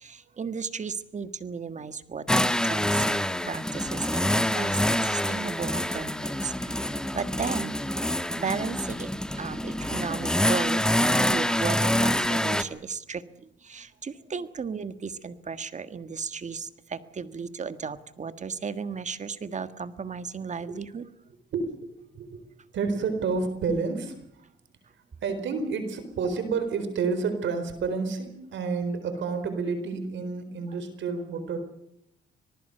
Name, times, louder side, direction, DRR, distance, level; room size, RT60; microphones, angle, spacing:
voice 1, 0.0-7.8 8.4-9.1 9.4-10.8 11.2-13.2 13.6-21.0, right 5 dB, 35° right, 11 dB, 1.6 m, -35 dB
sound 1, 2.3-12.6, left 1 dB, 5° left, 1.3 m, -26 dB
voice 2, 21.5-22.4 22.7-24.4 25.2-31.6, right 4 dB, 70° right, 9 dB, 4.2 m, -30 dB
26.0 x 19.0 x 6.8 m, 0.74 s
cardioid pair, 90°, 20 cm